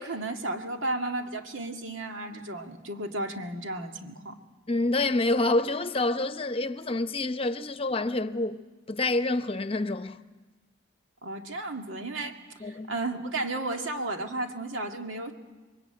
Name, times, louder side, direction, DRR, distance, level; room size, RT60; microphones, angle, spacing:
voice 1, 0.0-4.4 11.2-12.4 12.6-15.3, right 2 dB, 90° right, 2.1 m, -33 dB
voice 2, 4.7-8.6 8.9-10.2 12.6-12.9, left 2 dB, 30° left, 0.8 m, -27 dB
28.0 x 22.5 x 9.0 m
head